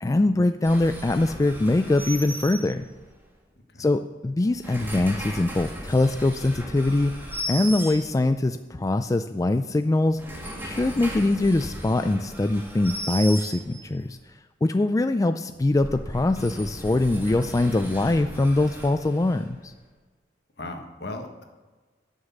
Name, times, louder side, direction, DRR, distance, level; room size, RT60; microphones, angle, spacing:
voice 1, 0.0-2.8 3.8-7.1 7.5-10.2 10.6-14.2 14.6-19.7, left 2 dB, 20° left, 9 dB, 0.3 m, -23 dB
sound 1, 0.6-3.2 4.4-8.5 10.0-14.0 15.5-19.7, equal, 15° right, 2.2 m, -37 dB
voice 2, 20.6-21.4, left 2 dB, 70° left, 4 dB, 1.5 m, -37 dB
11.0 x 6.5 x 7.1 m, 1.3 s
head